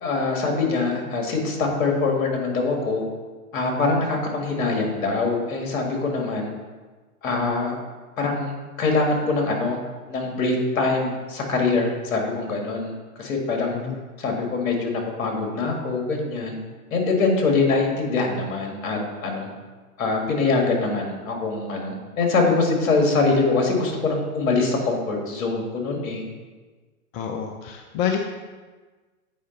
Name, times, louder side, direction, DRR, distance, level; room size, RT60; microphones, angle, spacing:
voice 1, 0.0-3.0 3.5-6.5 7.2-7.7 8.2-9.8 10.1-12.9 13.2-13.8 14.2-16.6 16.9-19.5 20.0-26.2, left 3 dB, 65° left, 1 dB, 2.1 m, -23 dB
voice 2, 27.1-28.2, left 8 dB, 30° left, 4 dB, 0.5 m, -27 dB
8.5 x 5.0 x 3.9 m, 1.3 s
hypercardioid pair, 115°, 43 cm